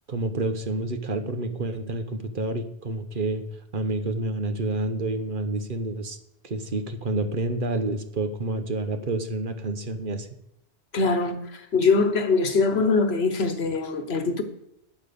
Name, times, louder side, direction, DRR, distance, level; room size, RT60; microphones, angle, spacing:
voice 1, 0.1-3.4 3.7-6.2 6.4-10.3, right 2 dB, 55° right, 1.1 m, -29 dB
voice 2, 10.9-14.4, left 4 dB, 75° left, 1.4 m, -23 dB
9.0 x 8.8 x 6.9 m
omnidirectional pair, 1.1 m